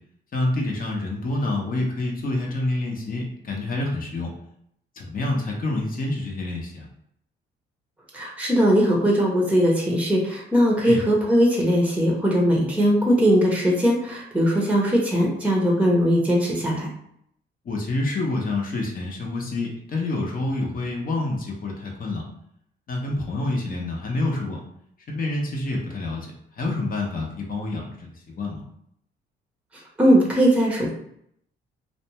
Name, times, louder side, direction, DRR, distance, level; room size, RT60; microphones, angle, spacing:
voice 1, 0.3-4.3 5.0-6.9 10.8-11.0 17.6-22.2 22.9-24.6 25.1-28.6, left 2 dB, 45° left, -1 dB, 0.7 m, -27 dB
voice 2, 8.1-16.9 30.0-30.9, equal, 5° right, -2 dB, 0.7 m, -20 dB
2.5 x 2.1 x 2.9 m, 0.72 s
cardioid pair, 90°, 20 cm